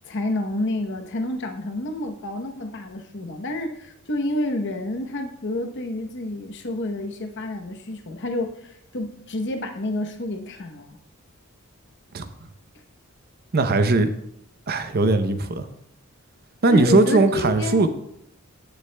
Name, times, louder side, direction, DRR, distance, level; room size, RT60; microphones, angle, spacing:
voice 1, 0.0-11.0 16.7-17.8, left 1 dB, 55° left, 5 dB, 0.9 m, -29 dB
voice 2, 13.5-14.1 14.7-15.7 16.6-17.9, right 2 dB, 45° right, 9 dB, 0.6 m, -19 dB
15.0 x 6.6 x 2.2 m, 0.76 s
head